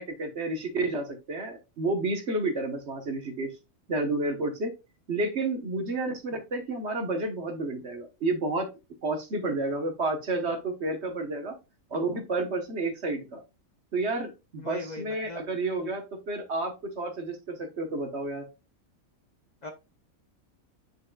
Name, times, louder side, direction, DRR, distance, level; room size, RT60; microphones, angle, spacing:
voice 1, 0.0-3.5 3.9-4.7 5.1-8.7 9.0-11.5 11.9-13.4 13.9-18.5, right 2 dB, 55° right, 5 dB, 1.4 m, -30 dB
voice 2, 14.6-15.4 19.6-19.7, left 2 dB, 35° left, 4 dB, 1.0 m, -39 dB
9.3 x 4.8 x 2.3 m, 0.27 s
omnidirectional pair, 1.4 m